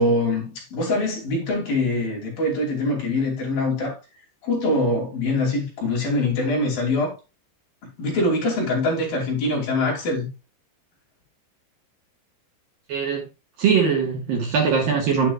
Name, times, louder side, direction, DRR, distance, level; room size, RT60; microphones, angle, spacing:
voice 1, 0.0-4.0 4.4-7.2 8.0-10.3, left 2 dB, 50° left, 4.3 m, -23 dB
voice 2, 12.9-13.3 13.6-15.3, right 6 dB, 60° right, 2.8 m, -21 dB
9.8 x 9.0 x 2.4 m
omnidirectional pair, 5.4 m